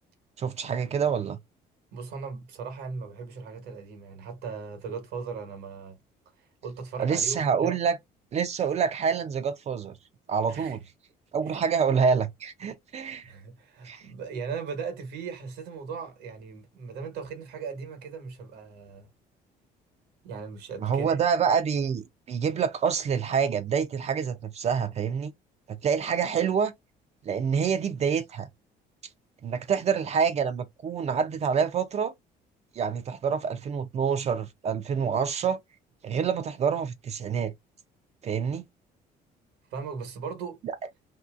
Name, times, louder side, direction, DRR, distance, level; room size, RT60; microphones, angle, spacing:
voice 1, 0.4-1.4 7.0-8.0 8.3-10.0 10.3-10.8 11.3-13.3 13.8-14.0 20.8-25.3 25.7-26.7 27.3-28.5 29.4-32.1 32.7-35.6 36.0-37.5 38.2-38.6, right 6 dB, 40° right, 0.4 m, -27 dB
voice 2, 1.9-6.0 6.4-7.8 10.5-10.8 11.5-11.6 13.2-19.1 20.2-21.2 39.7-40.6, right 5 dB, 85° right, 1.1 m, -38 dB
2.8 x 2.7 x 2.4 m
cardioid pair, 110°, 17 cm